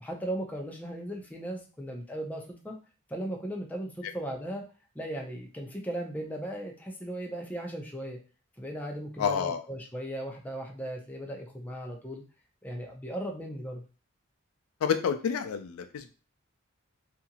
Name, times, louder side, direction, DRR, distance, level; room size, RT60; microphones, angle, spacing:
voice 1, 0.0-2.8 3.1-4.6 4.9-8.2 8.6-12.2 12.6-13.8, right 1 dB, 10° left, 0 dB, 0.5 m, -37 dB
voice 2, 9.2-9.6 14.8-16.1, left 7 dB, 90° left, 9 dB, 0.4 m, -28 dB
2.8 x 2.4 x 2.8 m, 0.34 s
head